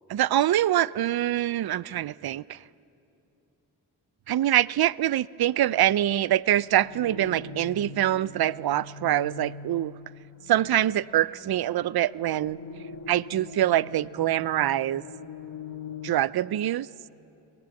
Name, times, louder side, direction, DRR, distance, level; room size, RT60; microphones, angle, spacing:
voice 1, 0.1-2.6 4.3-9.9 10.5-12.6 13.1-15.0 16.0-16.9, right 12 dB, 55° right, 20 dB, 0.6 m, -24 dB
sound 1, 6.4-16.1, left 3 dB, 70° left, 2.3 m, -43 dB
24.0 x 19.0 x 7.1 m, 2.8 s
supercardioid pair, 45°, 44 cm